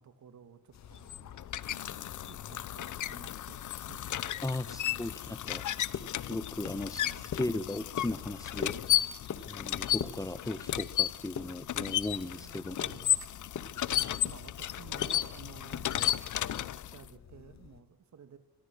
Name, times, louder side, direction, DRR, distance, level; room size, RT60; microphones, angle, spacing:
voice 1, 0.0-5.3 6.6-7.4 12.3-13.3 13.9-18.4, right 7 dB, 70° right, 9 dB, 2.8 m, -54 dB
sound 1, 0.7-17.8, left 7 dB, 65° left, 1.7 m, -46 dB
sound 2, 0.8-17.1, left 12 dB, 85° left, 0.9 m, -34 dB
sound 3, 2.7-12.6, left 3 dB, 35° left, 7.0 m, -64 dB
voice 2, 4.4-5.6 6.3-7.0 7.3-8.8 9.5-12.8, left 2 dB, 10° left, 14 dB, 1.1 m, -36 dB
27.0 x 23.5 x 6.6 m, 0.88 s
wide cardioid pair, 120°, 30 cm